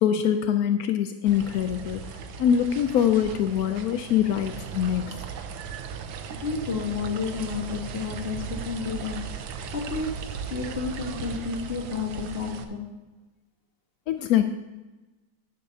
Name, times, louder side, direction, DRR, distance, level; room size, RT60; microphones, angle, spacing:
voice 1, 0.0-2.0 2.4-5.2 14.1-14.5, left 9 dB, 80° left, 9 dB, 0.8 m, -23 dB
sound 1, 1.3-12.6, right 6 dB, 85° right, 1.5 m, -37 dB
voice 2, 6.4-9.3 9.7-10.2 10.5-12.9, left 5 dB, 35° left, 2 dB, 1.4 m, -31 dB
13.0 x 10.5 x 2.7 m, 1.2 s
omnidirectional pair, 2.1 m